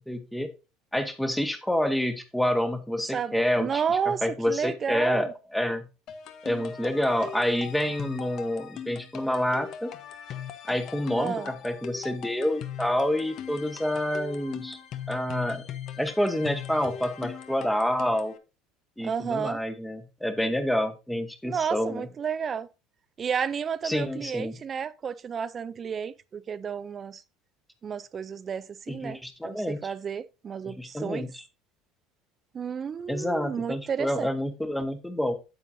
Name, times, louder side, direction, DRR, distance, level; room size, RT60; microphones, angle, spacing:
voice 1, 0.1-0.5 0.9-3.7 4.1-5.9 6.4-9.9 10.7-14.8 15.1-15.6 16.0-18.4 19.0-22.1 23.8-24.6 28.9-29.9 30.6-31.4 33.1-35.3, left 1 dB, 5° left, 1.1 m, -28 dB
voice 2, 3.1-5.3 11.2-11.5 19.0-19.6 21.4-22.7 23.2-27.2 27.8-31.3 32.5-34.3, right 7 dB, 30° right, 0.4 m, -31 dB
sound 1, 6.1-18.4, left 9 dB, 50° left, 0.8 m, -40 dB
9.1 x 7.7 x 2.7 m
supercardioid pair, 125°, 0 cm